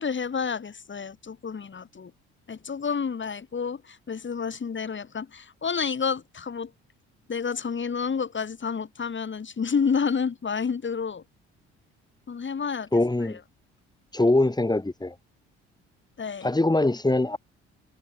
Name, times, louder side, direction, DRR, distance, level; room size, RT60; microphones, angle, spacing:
voice 1, 0.0-2.1 2.5-6.7 7.3-11.2 12.3-12.9 13.2-13.4 16.2-16.5, left 6 dB, 40° left, 7.5 m, -29 dB
voice 2, 12.9-13.4 14.1-15.1 16.4-17.4, left 2 dB, 15° left, 5.0 m, -22 dB
hypercardioid pair, 60°, 30 cm